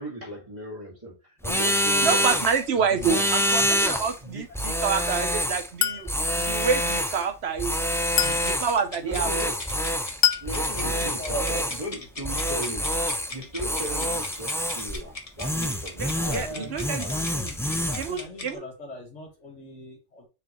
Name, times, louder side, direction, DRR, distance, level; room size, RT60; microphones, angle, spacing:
voice 1, 0.0-2.4 2.8-3.3 3.6-3.8 4.2-4.4 8.2-8.4 9.0-9.6 10.4-12.9 13.3-17.4, right 1 dB, 30° right, 2.3 m, -37 dB
sound 1, 1.4-2.6 3.0-4.2 4.5-5.7 6.1-7.2 7.6-8.8 9.1-10.2 10.5-11.9 12.2-13.3 13.6-15.0 15.4-16.5 16.8-18.1, equal, 5° left, 0.5 m, -26 dB
voice 2, 2.0-6.1 6.4-7.8 8.4-9.3 16.0-17.1 18.0-18.6, right 6 dB, 65° right, 1.1 m, -27 dB
Chink clink, 5.8-6.1 8.2-8.5 10.2-10.5, left 10 dB, 60° left, 0.5 m, -24 dB
sound 2, 8.2-18.5, left 3 dB, 30° left, 1.1 m, -41 dB
voice 3, 10.8-12.2 16.1-17.6 17.9-20.3, left 1 dB, 85° left, 2.4 m, -40 dB
7.1 x 4.6 x 3.1 m
omnidirectional pair, 1.2 m